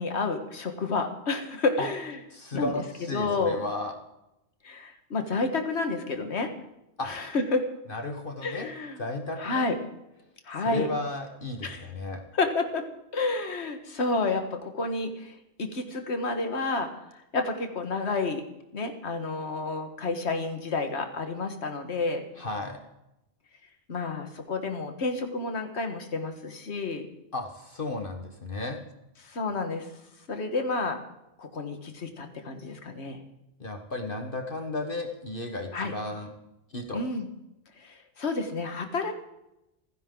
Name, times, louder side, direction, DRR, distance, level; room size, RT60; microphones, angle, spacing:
voice 1, 0.0-2.2 2.5-2.7 3.1-3.6 4.6-6.5 7.0-7.7 8.4-9.0 9.4-9.8 10.5-10.9 11.6-11.8 12.3-12.9 13.1-18.4 18.7-22.3 23.9-27.1 29.2-29.9 30.3-31.0 31.4-33.2 35.7-35.9 36.9-37.3 37.8-39.1, left 3 dB, 70° left, 6 dB, 1.9 m, -30 dB
voice 2, 2.3-3.9 7.0-7.1 7.9-8.7 9.0-9.7 10.6-12.2 22.4-22.8 27.3-28.8 33.6-36.3 36.7-37.1, left 2 dB, 50° left, 4 dB, 1.6 m, -34 dB
28.0 x 10.5 x 3.9 m, 0.87 s
omnidirectional pair, 1.2 m